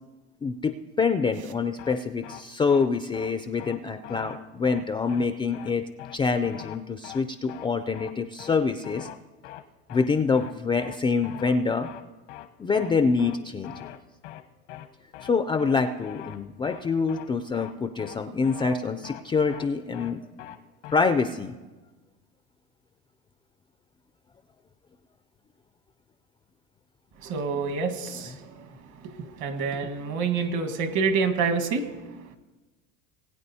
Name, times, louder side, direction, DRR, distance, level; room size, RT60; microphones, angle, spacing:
voice 1, 0.4-5.8 6.1-9.1 9.9-11.9 12.6-13.9 15.2-20.3 20.9-21.5, left 4 dB, 15° left, 7 dB, 0.3 m, -26 dB
sound 1, 1.8-2.0 2.2-2.4 2.7-2.9 3.1-3.3 3.6-3.8 4.0-4.4 4.6-4.8 5.1-5.3 5.5-5.7 6.0-6.2 6.4-6.8 7.0-7.2 7.5-7.7 7.9-8.1 8.4-8.6 8.8-9.2 9.4-9.6 9.9-10.1 10.3-10.5 10.8-11.0 11.2-11.6 11.8-12.0 12.3-12.5 12.7-12.9 13.2-13.4 13.6-14.0 14.2-14.4 14.7-14.9 15.1-15.3 15.6-15.8 16.0-16.4 16.6-16.8 17.1-17.3 17.5-17.7 18.0-18.2 18.4-18.8 19.0-19.2 19.5-19.7 19.9-20.1 20.4-20.6 20.8-21.0, left 14 dB, 90° left, 1.0 m, -41 dB
voice 2, 27.2-32.4, right 5 dB, 55° right, 6 dB, 1.5 m, -28 dB
20.0 x 8.9 x 2.7 m, 1.2 s
supercardioid pair, 110°, 34 cm